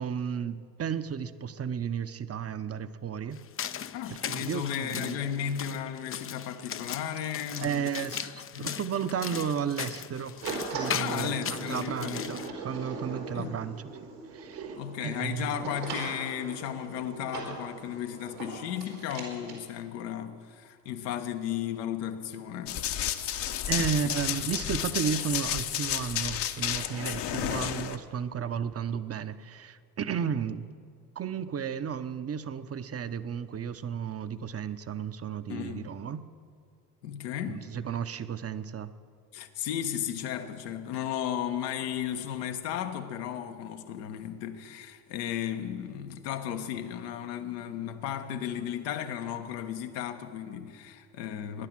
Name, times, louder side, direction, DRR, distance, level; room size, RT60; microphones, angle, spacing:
voice 1, 0.0-3.4 4.3-5.2 7.6-13.8 14.3-14.8 15.0-15.7 23.7-30.7 31.2-36.2 37.5-38.9, right 7 dB, 30° right, 0.9 m, -33 dB
sound 1, 3.3-12.5, left 9 dB, 30° left, 0.6 m, -38 dB
voice 2, 3.9-7.9 8.5-8.8 11.0-12.4 13.3-13.6 14.8-22.9 35.5-35.9 37.0-37.7 39.3-51.7, left 9 dB, 75° left, 1.3 m, -35 dB
sound 2, 10.4-19.6, right 3 dB, 90° right, 4.5 m, -39 dB
Run, 22.7-28.0, left 10 dB, 55° left, 1.2 m, -31 dB
21.5 x 11.0 x 6.1 m
hypercardioid pair, 60°, 48 cm